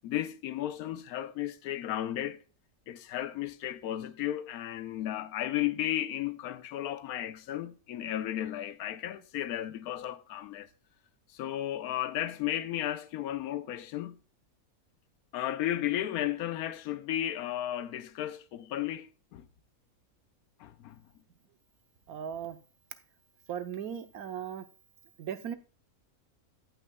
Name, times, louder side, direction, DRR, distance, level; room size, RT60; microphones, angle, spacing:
voice 1, 0.0-2.4 2.9-10.7 11.3-14.2 15.3-19.5 20.6-21.0, left 12 dB, 85° left, 1.1 m, -34 dB
voice 2, 22.1-22.6 23.5-24.6 25.2-25.6, right 9 dB, 90° right, 1.3 m, -37 dB
17.0 x 5.7 x 2.2 m
omnidirectional pair, 1.5 m